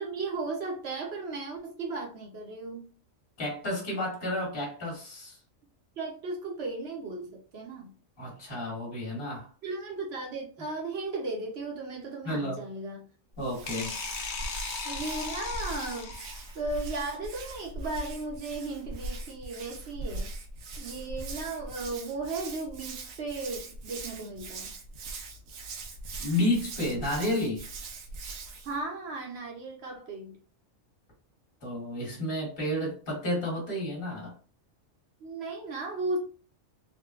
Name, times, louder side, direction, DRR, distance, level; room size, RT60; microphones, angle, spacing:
voice 1, 0.0-2.9 6.0-7.9 9.6-13.1 14.8-16.1 16.5-20.3 20.8-24.7 28.6-30.4 35.2-36.2, right 3 dB, 60° right, 0.9 m, -36 dB
voice 2, 3.4-5.4 8.2-9.5 12.2-12.6 13.4-14.0 26.2-27.7 31.6-34.3, left 1 dB, 45° left, 1.7 m, -31 dB
Hands, 13.3-28.8, right 2 dB, 90° right, 1.1 m, -41 dB
sound 1, 13.7-16.6, left 4 dB, 65° left, 0.9 m, -37 dB
3.6 x 2.2 x 2.3 m
omnidirectional pair, 1.3 m